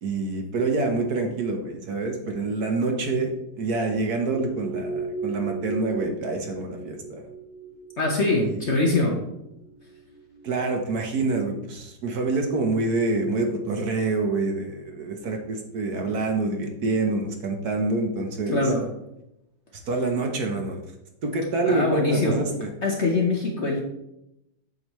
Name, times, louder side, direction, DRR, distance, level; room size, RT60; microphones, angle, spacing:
voice 1, 0.0-7.2 8.4-8.7 10.4-18.6 19.9-20.8 21.2-22.7, right 3 dB, 60° right, 3 dB, 1.3 m, -26 dB
sound 1, 4.3-10.4, right 3 dB, 40° right, 3.3 m, -36 dB
voice 2, 8.0-9.2 18.5-18.8 21.7-22.4 22.8-23.8, left 2 dB, 45° left, 0 dB, 1.0 m, -23 dB
8.0 x 7.0 x 3.1 m, 0.84 s
omnidirectional pair, 2.1 m